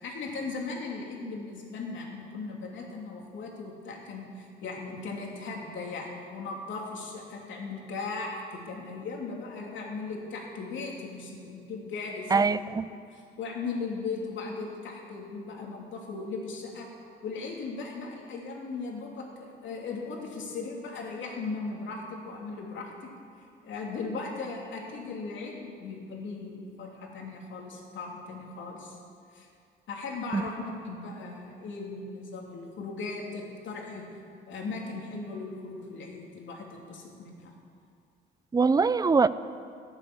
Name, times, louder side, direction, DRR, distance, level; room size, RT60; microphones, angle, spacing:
voice 1, 0.0-12.6 12.9-16.9 17.2-23.1 23.6-29.0 29.3-29.5 29.9-34.0 34.5-37.5, left 4 dB, 70° left, -1 dB, 3.1 m, -38 dB
voice 2, 12.3-12.9 30.3-30.4 38.5-39.3, right 4 dB, 20° right, 15 dB, 0.5 m, -22 dB
13.0 x 9.6 x 8.5 m, 2.4 s
cardioid pair, 90°, 20 cm